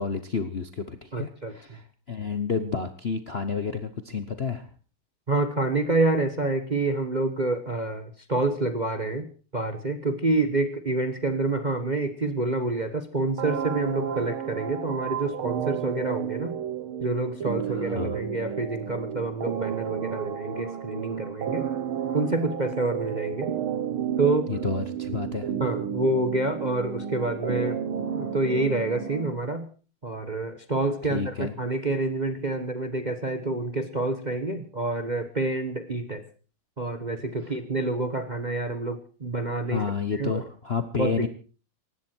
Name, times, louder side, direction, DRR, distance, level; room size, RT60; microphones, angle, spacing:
voice 1, 0.0-4.7 17.7-18.2 24.5-25.5 31.1-31.6 37.4-37.5 39.6-41.3, left 5 dB, 40° left, 9 dB, 0.9 m, -30 dB
voice 2, 1.1-1.5 5.3-9.3 9.5-16.5 17.0-21.7 22.1-23.5 24.2-24.5 25.6-27.8 28.1-29.7 30.0-36.2 36.8-39.8 40.1-40.4 41.0-41.3, right 2 dB, 30° right, 9 dB, 1.0 m, -27 dB
sound 1, 13.4-29.4, right 8 dB, 80° right, 2.2 m, -32 dB
19.0 x 15.5 x 4.5 m, 0.38 s
omnidirectional pair, 2.3 m